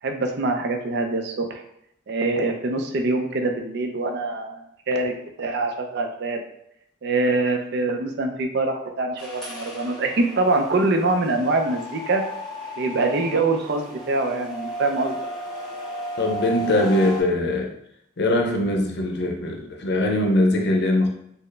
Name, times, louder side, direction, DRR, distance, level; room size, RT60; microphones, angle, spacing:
voice 1, 0.0-1.6 2.1-6.4 7.0-12.2 12.8-15.2, right 2 dB, 55° right, 4 dB, 0.5 m, -24 dB
sound 1, 9.2-17.2, equal, ahead, 1.4 m, -35 dB
voice 2, 16.2-17.7 18.2-21.1, left 1 dB, 55° left, 2 dB, 0.6 m, -21 dB
4.4 x 2.0 x 3.2 m, 0.76 s
head